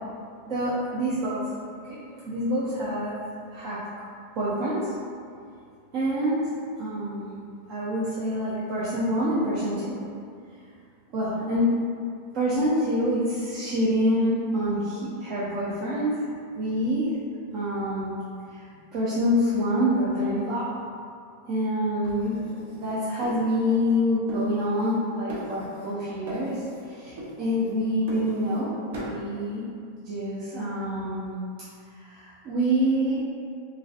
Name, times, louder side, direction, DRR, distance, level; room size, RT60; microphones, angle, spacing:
voice 1, 0.5-1.4 1.9-2.0 2.3-3.1 3.5-3.8 4.4-4.9 5.9-6.5 6.8-7.4 7.7-10.0 11.1-11.8 12.3-16.3 16.5-17.1 17.5-18.2 18.5-20.8 21.5-22.4 22.7-28.7 29.0-29.7 30.0-31.4 31.9-33.2, equal, 40° right, -9 dB, 0.5 m, -26 dB
sound 1, 22.0-24.0 24.3-25.0 25.3-26.0 26.3-26.9 27.2-28.7 28.9-29.2, right 1 dB, 80° right, 0.7 m, -40 dB
3.1 x 2.5 x 2.5 m, 2.4 s
supercardioid pair, 155°, 0 cm